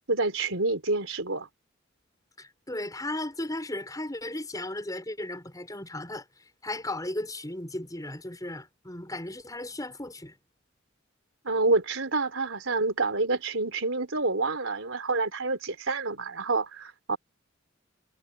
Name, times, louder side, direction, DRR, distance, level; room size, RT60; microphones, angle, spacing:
voice 1, 0.1-1.5 11.4-17.2, right 3 dB, 80° right, 4.1 m, -28 dB
voice 2, 2.4-6.3 6.6-10.3, left 1 dB, 20° left, 6.9 m, -35 dB
head